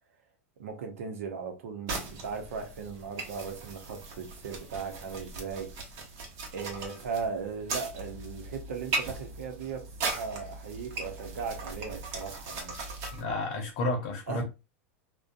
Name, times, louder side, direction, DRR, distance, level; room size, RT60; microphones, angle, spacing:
voice 1, 0.6-5.7 6.5-12.8 14.3-14.4, right 5 dB, 85° right, 0.7 m, -37 dB
sound 1, 1.9-13.2, right 3 dB, 50° right, 0.9 m, -38 dB
voice 2, 13.1-14.4, left 2 dB, 55° left, 0.7 m, -31 dB
2.5 x 2.2 x 2.5 m
hypercardioid pair, 115°, 7 cm